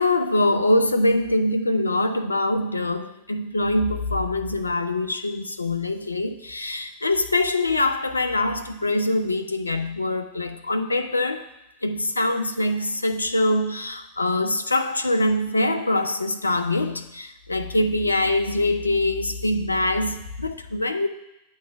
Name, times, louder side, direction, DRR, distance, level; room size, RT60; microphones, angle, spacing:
voice 1, 0.0-11.4 11.8-21.1, left 2 dB, 80° left, 0.4 m, -23 dB
8.5 x 3.2 x 5.6 m
figure-of-eight pair, 90°, 0 cm